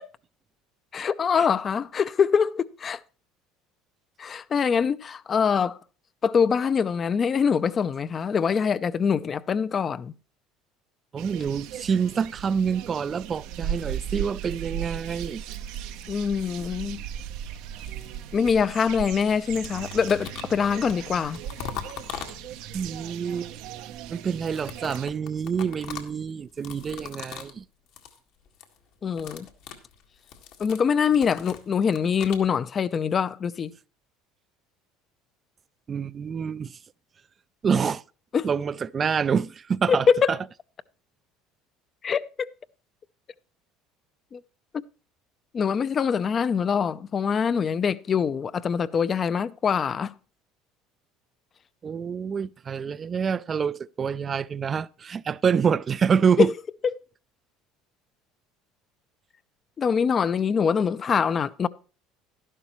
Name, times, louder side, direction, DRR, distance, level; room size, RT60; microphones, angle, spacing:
voice 1, 0.9-3.0 4.2-5.8 6.2-10.1 16.1-17.0 18.3-21.4 29.0-29.5 30.6-33.7 38.3-38.5 39.9-40.4 42.0-42.2 44.3-44.4 45.5-50.1 56.4-56.5 59.8-61.7, left 6 dB, 35° left, 0.5 m, -24 dB
voice 2, 11.1-15.4 22.7-23.5 24.1-27.6 35.9-36.7 37.6-38.0 38.4-40.4 51.8-56.5, right 6 dB, 35° right, 0.4 m, -26 dB
sound 1, 11.2-25.1, right 10 dB, 70° right, 0.7 m, -37 dB
sound 2, 14.8-16.4 17.3-18.9 19.2-22.8 24.2-27.6 27.9-28.2 28.5-28.8 29.1-32.5, left 8 dB, 70° left, 1.7 m, -42 dB
12.0 x 11.0 x 3.1 m
supercardioid pair, 90°, 0 cm